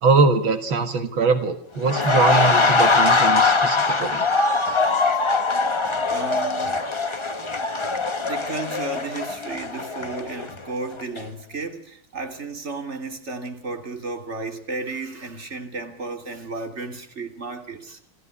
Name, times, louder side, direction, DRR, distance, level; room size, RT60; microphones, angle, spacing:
voice 1, 0.0-4.3, right 4 dB, 75° right, 2.4 m, -22 dB
sound 1, 1.8-10.7 11.0-11.2, left 3 dB, 25° left, 0.6 m, -22 dB
sound 2, 4.4-8.2, left 3 dB, 55° left, 5.8 m, -32 dB
voice 2, 6.0-6.9 8.2-18.1, right 3 dB, 35° right, 3.2 m, -33 dB
28.0 x 16.0 x 9.7 m
omnidirectional pair, 2.2 m